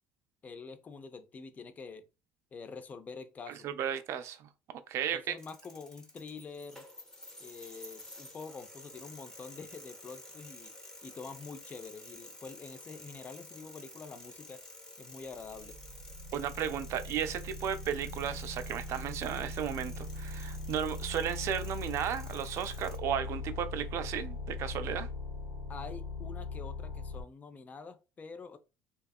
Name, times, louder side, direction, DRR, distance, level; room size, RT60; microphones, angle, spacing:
voice 1, 0.4-2.0 2.5-3.7 5.1-6.9 7.4-10.7 11.0-14.6 15.0-15.8 25.7-28.6, left 4 dB, 30° left, 0.4 m, -46 dB
voice 2, 3.6-5.3 16.3-25.1, right 9 dB, 55° right, 0.4 m, -34 dB
sound 1, 5.4-23.0, left 1 dB, 10° left, 0.7 m, -51 dB
sound 2, 15.4-27.2, left 2 dB, 85° left, 0.9 m, -41 dB
2.6 x 2.3 x 2.3 m
supercardioid pair, 100°, 6 cm